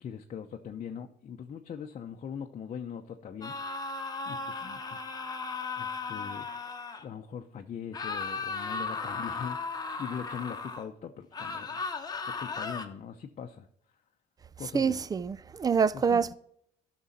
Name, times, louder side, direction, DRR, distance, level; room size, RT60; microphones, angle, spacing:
voice 1, 0.0-3.6 4.3-5.1 5.8-6.5 7.0-9.6 10.0-11.8 12.4-13.7 14.6-15.0 15.9-16.3, left 7 dB, 45° left, 0.8 m, -41 dB
sound 1, 3.4-7.0 7.9-10.9 11.3-12.8, left 4 dB, 25° left, 1.1 m, -36 dB
voice 2, 14.7-16.3, right 6 dB, 20° right, 0.4 m, -26 dB
13.0 x 6.3 x 4.2 m
cardioid pair, 110°, 17 cm